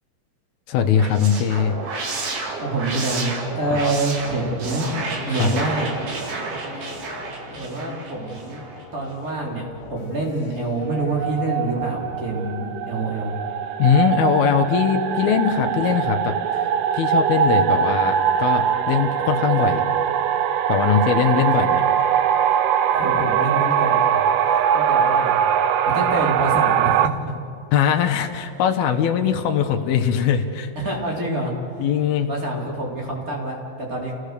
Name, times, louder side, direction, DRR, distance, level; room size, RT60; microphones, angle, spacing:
voice 1, 0.7-1.8 3.7-3.9 5.3-5.6 13.8-16.7 16.9-19.8 20.7-21.9 27.7-30.7 31.8-32.3, left 8 dB, 90° left, 3 dB, 2.9 m, -21 dB
sound 1, 0.8-8.8, right 3 dB, 60° right, 3.7 m, -31 dB
voice 2, 2.5-4.9 5.2-5.9 7.5-8.7 8.9-9.6 9.9-13.4 22.9-24.2 24.5-25.5 25.8-27.3 30.8-31.5 32.2-34.1, right 2 dB, 25° right, -2 dB, 3.7 m, -26 dB
sound 2, 4.2-12.4, left 5 dB, 70° left, 2.7 m, -42 dB
sound 3, 10.8-27.1, right 8 dB, 75° right, 2.1 m, -21 dB
29.0 x 17.0 x 6.7 m, 2.4 s
omnidirectional pair, 4.2 m